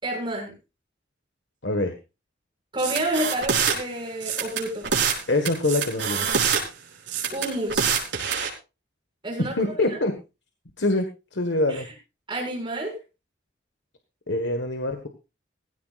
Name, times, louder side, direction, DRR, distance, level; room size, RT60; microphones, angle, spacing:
voice 1, 0.0-0.5 2.7-4.9 7.3-7.8 9.2-9.5 9.9-10.0 11.7-11.8 12.3-12.9, right 1 dB, 25° right, 0 dB, 6.4 m, -29 dB
voice 2, 1.6-2.0 5.3-6.3 9.4-10.2 10.8-11.9 14.3-15.1, left 2 dB, 75° left, 6 dB, 1.6 m, -25 dB
sound 1, 2.8-3.8 4.2-5.2 5.5-6.6 7.1-8.5, right 6 dB, 75° right, 4.4 m, -25 dB
17.5 x 15.5 x 2.5 m, 0.30 s
head